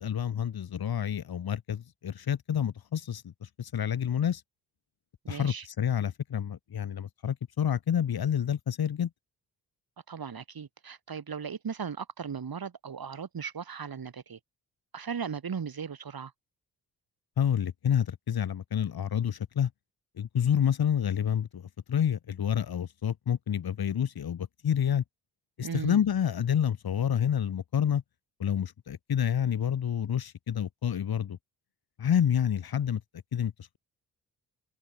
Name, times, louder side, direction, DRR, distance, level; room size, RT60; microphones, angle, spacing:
voice 1, 0.0-3.3 3.6-4.4 5.3-9.1 17.4-19.7 20.2-21.6 21.9-25.0 25.6-28.0 28.4-31.4 32.0-33.0 33.3-33.8, left 9 dB, 55° left, 2.0 m, -28 dB
voice 2, 5.2-5.7 10.1-14.4 14.9-16.3 25.6-26.0, right 6 dB, 50° right, 6.7 m, -37 dB
hypercardioid pair, 45°, 45 cm